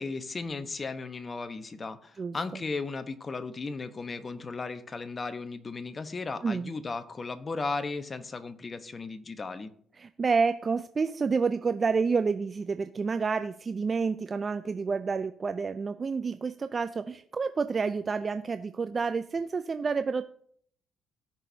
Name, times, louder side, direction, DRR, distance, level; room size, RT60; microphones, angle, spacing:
voice 1, 0.0-9.7, left 3 dB, 35° left, 10 dB, 1.1 m, -36 dB
voice 2, 10.0-20.3, right 5 dB, 40° right, 10 dB, 0.5 m, -29 dB
18.0 x 6.1 x 2.8 m, 0.62 s
hypercardioid pair, 55°, 0 cm